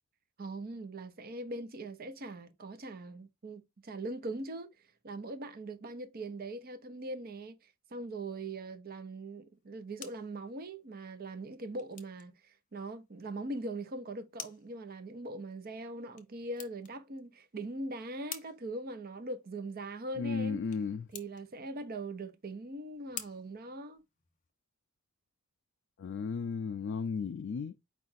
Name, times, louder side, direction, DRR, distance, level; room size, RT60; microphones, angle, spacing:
voice 1, 0.4-4.7 5.0-20.6 21.1-24.0, right 2 dB, 45° right, 0.6 m, -41 dB
sound 1, 9.5-24.5, left 9 dB, 35° left, 0.7 m, -52 dB
voice 2, 20.2-21.1 26.0-27.7, left 5 dB, 55° left, 0.3 m, -34 dB
4.8 x 2.5 x 4.0 m
head